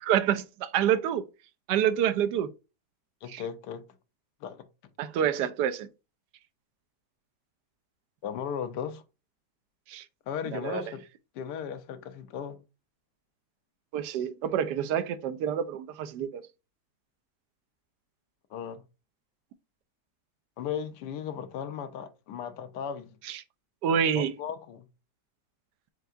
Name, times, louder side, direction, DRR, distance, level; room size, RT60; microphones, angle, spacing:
voice 1, 0.1-1.2 1.7-2.5 3.3-3.4 5.0-5.9 9.9-10.0 10.5-10.8 13.9-16.4 23.2-23.4 23.8-24.3, right 9 dB, 85° right, 1.2 m, -27 dB
voice 2, 3.2-3.8 4.4-4.6 8.2-9.0 10.3-11.0 11.3-12.6 18.5-18.8 20.6-23.2 24.1-24.9, left 8 dB, 90° left, 1.3 m, -36 dB
4.6 x 4.5 x 2.5 m
omnidirectional pair, 1.8 m